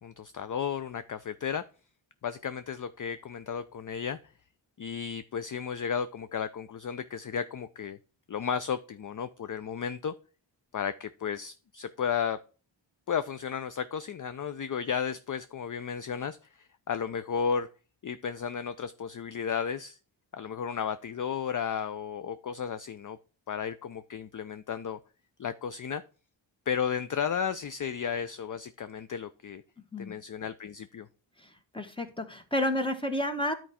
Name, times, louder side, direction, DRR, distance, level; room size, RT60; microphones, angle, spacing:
voice 1, 0.0-1.6 2.2-4.2 4.8-8.0 8.3-10.1 10.7-12.4 13.1-17.7 18.0-20.0 20.3-23.2 23.5-25.0 25.4-26.0 26.7-29.6 30.0-31.1, left 7 dB, 40° left, 13 dB, 0.5 m, -33 dB
voice 2, 31.7-33.5, left 1 dB, 10° left, 7 dB, 1.4 m, -30 dB
10.0 x 4.6 x 4.2 m, 0.36 s
cardioid pair, 65°, 47 cm